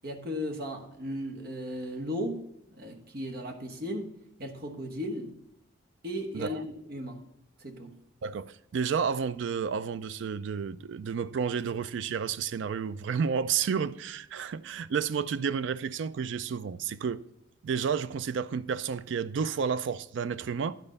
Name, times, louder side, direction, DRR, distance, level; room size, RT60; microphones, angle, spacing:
voice 1, 0.0-2.4 2.7-4.1 4.4-5.3 6.0-6.6 6.9-7.2 7.6-7.9, equal, 50° right, 1.1 m, -36 dB
voice 2, 8.2-17.2 17.6-20.8, right 6 dB, 70° right, 0.3 m, -31 dB
11.0 x 4.4 x 5.3 m
head